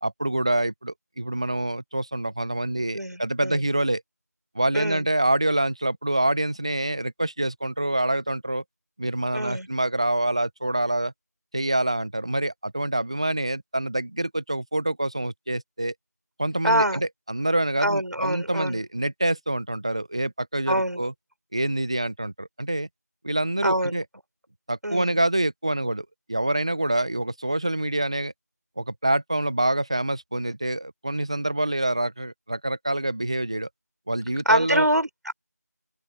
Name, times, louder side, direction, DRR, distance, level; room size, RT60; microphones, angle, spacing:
voice 1, 0.0-4.0 4.5-8.6 9.0-11.1 11.5-15.9 16.4-21.1 21.5-22.9 23.2-24.0 24.7-28.3 28.8-33.7 34.1-34.9, right 1 dB, 20° right, 1.0 m, -26 dB
voice 2, 2.9-3.6 4.7-5.1 9.3-9.7 16.6-17.1 17.8-18.8 20.7-21.0 23.6-23.9 24.8-25.2 34.5-35.3, right 1 dB, 70° right, 5.8 m, -25 dB
open air
figure-of-eight pair, 175°, 9 cm